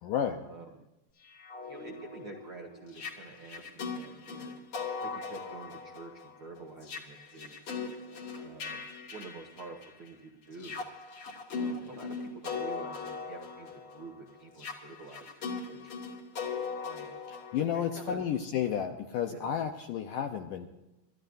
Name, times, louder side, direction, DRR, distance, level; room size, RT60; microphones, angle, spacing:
voice 1, 0.0-0.4 17.3-20.7, left 9 dB, 80° left, 5 dB, 1.9 m, -32 dB
sound 1, 1.2-10.1 10.5-18.3, left 4 dB, 40° left, 2.4 m, -40 dB
voice 2, 1.7-4.6 5.0-7.7 8.3-8.8 9.1-10.8 11.5-15.9 16.8-17.2 17.7-18.2 19.3-19.5, right 3 dB, 75° right, 2 dB, 1.2 m, -48 dB
29.5 x 13.5 x 2.7 m, 0.98 s
omnidirectional pair, 4.8 m